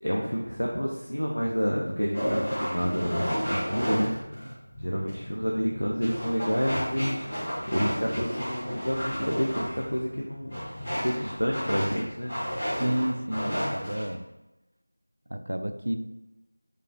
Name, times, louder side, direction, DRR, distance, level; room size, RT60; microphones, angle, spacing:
voice 1, 0.0-4.1 4.8-7.3 7.7-12.3, equal, 85° left, -3 dB, 0.5 m, -29 dB
sound 1, 2.1-14.1, equal, 20° left, 1.4 m, -32 dB
voice 2, 12.8-14.2 15.3-15.9, right 1 dB, 60° right, 7 dB, 0.3 m, -30 dB
4.7 x 2.4 x 2.2 m, 0.98 s
figure-of-eight pair, 170°, 0 cm